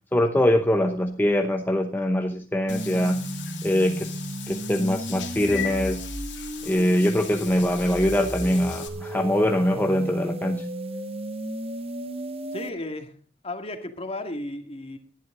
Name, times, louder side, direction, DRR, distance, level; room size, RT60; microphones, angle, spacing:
voice 1, 0.1-3.3 3.6-6.1 6.6-10.7, left 1 dB, 10° left, 4 dB, 0.8 m, -23 dB
Meow / Water / Bathtub (filling or washing), 2.7-8.9, left 9 dB, 80° left, 2.5 m, -39 dB
sound 1, 2.7-12.7, right 1 dB, 35° right, 1.0 m, -34 dB
voice 2, 12.5-13.1 13.4-15.0, left 1 dB, 35° left, 6 dB, 2.0 m, -34 dB
19.0 x 11.5 x 3.8 m, 0.40 s
head